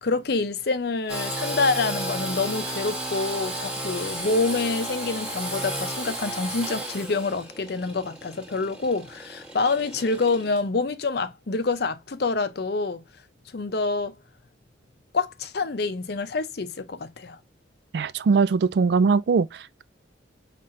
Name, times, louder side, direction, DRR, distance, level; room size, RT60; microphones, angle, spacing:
voice 1, 0.0-13.0 13.5-14.1 15.1-17.4, left 3 dB, 55° left, 0.6 m, -27 dB
Engine / Sawing, 1.1-10.6, right 1 dB, 5° right, 1.1 m, -33 dB
voice 2, 17.9-19.8, right 5 dB, 55° right, 0.3 m, -21 dB
5.6 x 3.3 x 2.5 m
head